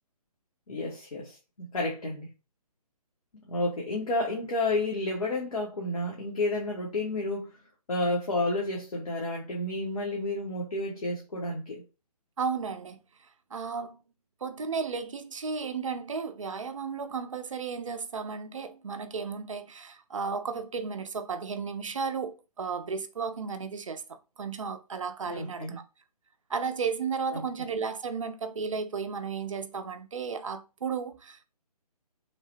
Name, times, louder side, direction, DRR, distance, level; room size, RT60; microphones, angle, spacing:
voice 1, 0.7-2.3 3.3-7.5 7.9-11.8 25.3-25.8 27.3-27.4, left 2 dB, 65° left, 0.8 m, -31 dB
voice 2, 12.4-13.0 13.5-14.0 14.4-25.8 26.5-31.4, right 5 dB, 55° right, 0.4 m, -34 dB
3.1 x 2.0 x 2.7 m
figure-of-eight pair, 140°, 20 cm